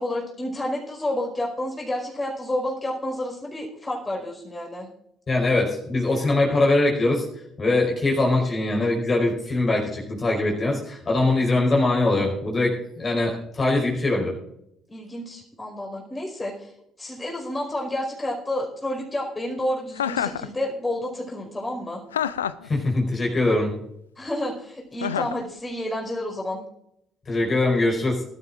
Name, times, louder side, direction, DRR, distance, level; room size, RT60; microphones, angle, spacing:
voice 1, 0.0-4.9 14.9-16.7 17.0-22.0 24.2-26.6, left 1 dB, 20° left, 0 dB, 4.9 m, -30 dB
voice 2, 5.3-7.2 7.6-14.3 22.6-23.7 27.3-28.2, left 2 dB, 35° left, -1 dB, 4.8 m, -22 dB
Chuckle chortle, 20.0-20.5 22.1-22.7 25.0-25.4, left 9 dB, 85° left, 0.4 m, -27 dB
21.0 x 12.5 x 2.5 m, 0.77 s
figure-of-eight pair, 50°, 0 cm